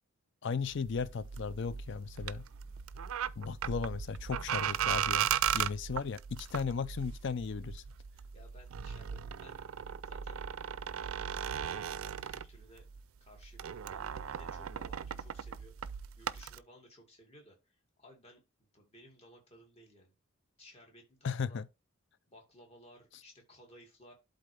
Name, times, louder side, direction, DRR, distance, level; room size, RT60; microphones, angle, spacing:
voice 1, 0.4-2.5 3.4-7.8 21.2-21.7, left 5 dB, 55° left, 0.4 m, -36 dB
sound 1, 0.6-13.0 13.3-16.6, right 9 dB, 75° right, 0.4 m, -37 dB
voice 2, 8.3-9.6 10.0-10.4 11.7-12.8 13.2-15.7 16.2-18.4 18.7-20.1 20.6-21.6 22.3-24.1, equal, 30° left, 2.2 m, -58 dB
11.5 x 4.0 x 3.3 m
head